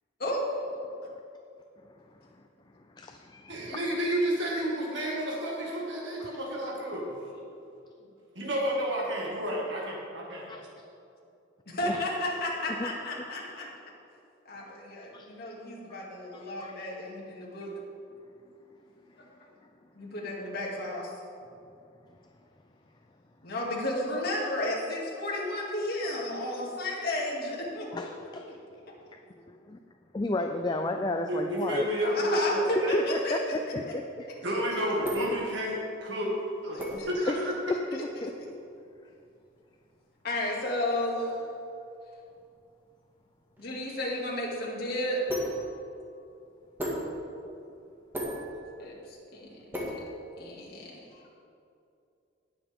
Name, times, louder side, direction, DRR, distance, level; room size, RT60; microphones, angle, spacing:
voice 1, 3.0-3.8 6.2-6.3 10.5-10.6 11.8-12.0 12.8-12.9 15.1-15.3 16.3-16.7 27.9-28.4 30.1-31.9 32.9-34.0 37.3-37.4 37.9-38.3, left 2 dB, 20° left, 5 dB, 0.4 m, -32 dB
voice 2, 3.5-7.2 8.4-10.5 31.2-33.0 34.4-36.3 36.6-37.5, equal, 65° right, -3 dB, 2.1 m, -30 dB
voice 3, 11.7-13.7 14.5-17.7 19.2-19.3 19.9-21.1 23.4-28.1 28.5-28.6 32.0-33.3 36.7-37.1 40.2-41.4 43.6-45.2 48.8-49.8 50.4-51.2, left 1 dB, 50° left, -4 dB, 2.4 m, -33 dB
sound 1, 34.5-50.8, equal, 10° right, 1.9 m, -40 dB
18.5 x 7.0 x 3.7 m, 2.6 s
head